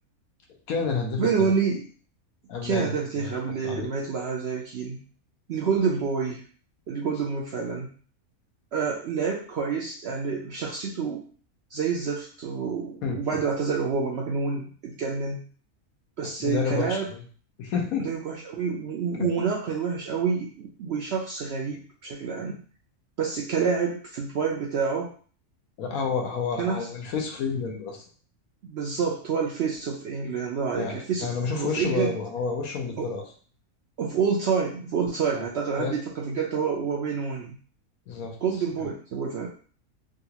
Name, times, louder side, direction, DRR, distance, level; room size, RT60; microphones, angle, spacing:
voice 1, 0.7-1.5 2.5-2.9 3.2-3.3 3.6-3.9 13.0-13.2 16.2-17.2 17.6-18.0 19.1-19.3 25.8-28.0 30.7-33.2 35.3-35.4 35.8-36.0 38.1-38.4 38.8-38.9, left 5 dB, 80° left, 1 dB, 1.2 m, -30 dB
voice 2, 1.2-1.8 2.6-5.0 5.5-6.4 6.9-7.9 8.7-11.3 11.7-15.4 16.2-17.1 18.0-22.6 23.2-25.1 26.6-26.9 28.6-32.2 33.0-33.1 34.0-37.6 38.4-39.5, right 5 dB, 70° right, -1 dB, 0.6 m, -28 dB
3.6 x 2.3 x 2.8 m, 0.43 s
omnidirectional pair, 1.5 m